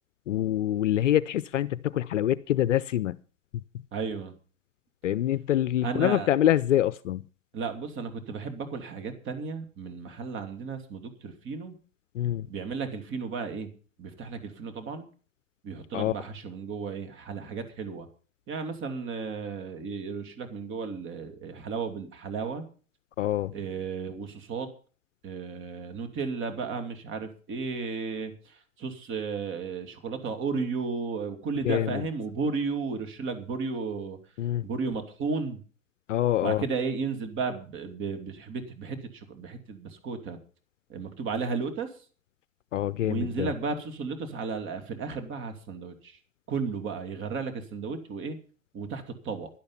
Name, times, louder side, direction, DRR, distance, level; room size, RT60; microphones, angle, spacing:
voice 1, 0.3-3.2 5.0-7.2 12.1-12.5 15.9-16.1 23.2-23.5 31.6-32.0 34.4-34.6 36.1-36.6 42.7-43.5, left 12 dB, 60° left, 0.6 m, -25 dB
voice 2, 3.9-4.3 5.8-6.3 7.5-11.7 12.5-13.7 14.0-15.1 15.6-18.1 18.5-22.6 23.5-24.7 25.2-34.2 34.6-35.6 36.4-40.4 40.9-42.0 43.0-46.2 46.5-48.4 48.7-49.5, right 5 dB, 30° right, 2.7 m, -34 dB
12.0 x 12.0 x 5.7 m
figure-of-eight pair, 105°, 41 cm